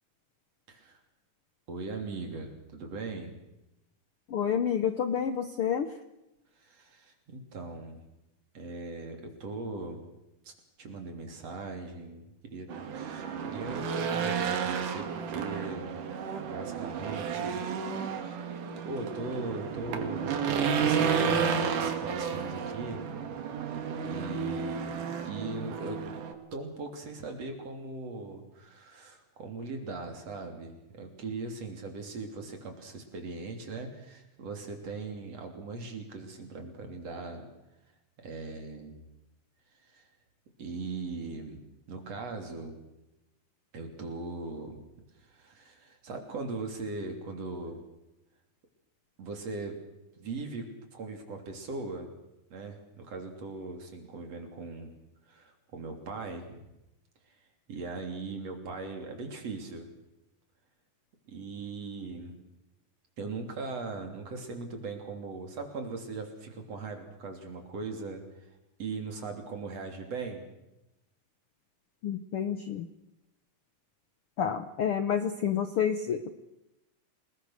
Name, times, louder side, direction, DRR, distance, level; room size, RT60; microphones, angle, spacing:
voice 1, 0.7-1.0 1.7-3.4 6.6-8.0 8.5-10.1 10.5-12.7 12.9-16.0 16.4-20.3 20.7-23.0 24.0-26.0 26.5-37.5 38.2-39.0 39.9-40.0 40.6-42.8 43.7-44.8 45.2-47.8 49.2-49.8 50.2-52.1 52.5-54.9 55.3-56.7 57.7-59.9 61.3-62.4 63.2-68.2 68.8-70.4, right 3 dB, 45° right, 4 dB, 4.0 m, -39 dB
voice 2, 4.3-5.9 72.0-72.8 74.4-76.3, left 8 dB, 90° left, 9 dB, 1.2 m, -29 dB
Race car auto racing / Engine, 12.7-26.3, right 6 dB, 65° right, 3.4 m, -32 dB
28.5 x 20.5 x 6.5 m, 0.93 s
omnidirectional pair, 4.1 m